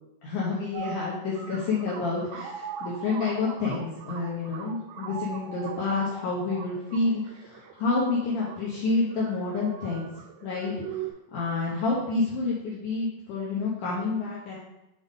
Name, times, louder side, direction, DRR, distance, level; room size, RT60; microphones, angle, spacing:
voice 1, 0.2-10.1 10.4-14.6, left 3 dB, 90° left, -5 dB, 1.8 m, -29 dB
sound 1, 0.7-11.1, right 7 dB, 90° right, 3.0 m, -41 dB
7.7 x 4.1 x 3.6 m, 0.91 s
omnidirectional pair, 5.2 m